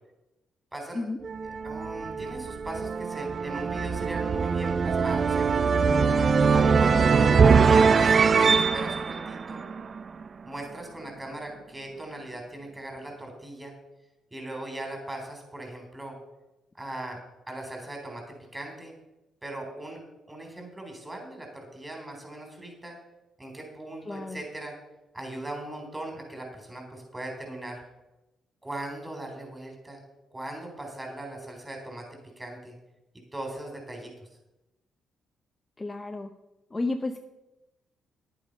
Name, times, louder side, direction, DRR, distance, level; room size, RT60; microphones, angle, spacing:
voice 1, 0.7-1.1 1.6-5.5 6.5-9.6 10.4-13.7 14.3-16.2 16.8-17.2 17.5-18.9 19.4-20.0 20.3-23.0 23.4-24.7 25.1-27.8 28.6-30.0 30.3-32.7 33.3-34.1, right 1 dB, 15° right, 2 dB, 4.0 m, -39 dB
sound 1, 1.2-10.3, right 5 dB, 45° right, 0.6 m, -22 dB
voice 2, 6.9-7.8 24.1-24.4 35.8-36.3 36.7-37.2, left 2 dB, 20° left, 6 dB, 0.7 m, -33 dB
11.0 x 8.8 x 5.5 m, 0.96 s
cardioid pair, 90°, 0 cm